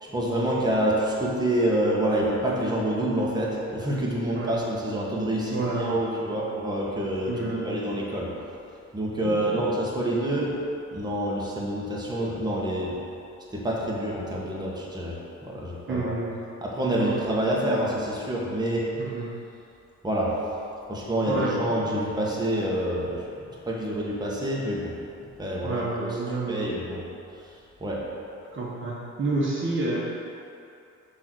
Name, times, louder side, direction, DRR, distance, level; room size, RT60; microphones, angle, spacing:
voice 1, 0.0-8.3 8.9-10.5 10.9-13.0 13.5-16.1 16.6-18.9 20.0-20.3 20.9-23.3 23.6-24.9 25.4-26.2 26.5-27.0 27.4-27.5 27.8-28.0, right 1 dB, 15° right, -5 dB, 1.4 m, -27 dB
voice 2, 5.5-6.3 7.3-7.8 9.2-9.6 15.9-16.4 16.9-17.1 18.9-19.3 21.3-21.7 25.6-26.6 28.5-30.0, right 2 dB, 40° right, -5 dB, 1.2 m, -29 dB
6.0 x 3.9 x 6.2 m, 2.7 s
cardioid pair, 90°, 30 cm